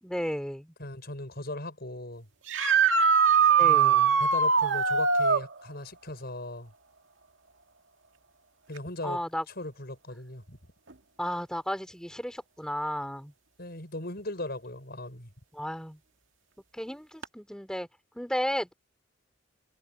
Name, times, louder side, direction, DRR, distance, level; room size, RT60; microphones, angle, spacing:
voice 1, 0.0-0.7 3.6-4.2 9.0-9.4 11.2-13.3 15.5-16.0 16.7-17.9 18.1-18.7, equal, 5° left, 3.8 m, -33 dB
voice 2, 0.8-2.3 3.6-6.7 8.7-9.2 9.6-10.6 13.6-15.3, left 1 dB, 50° left, 7.4 m, -38 dB
sound 1, 2.5-5.5 8.8-8.9 10.9-11.0 17.2-17.3, right 6 dB, 75° right, 2.1 m, -21 dB
head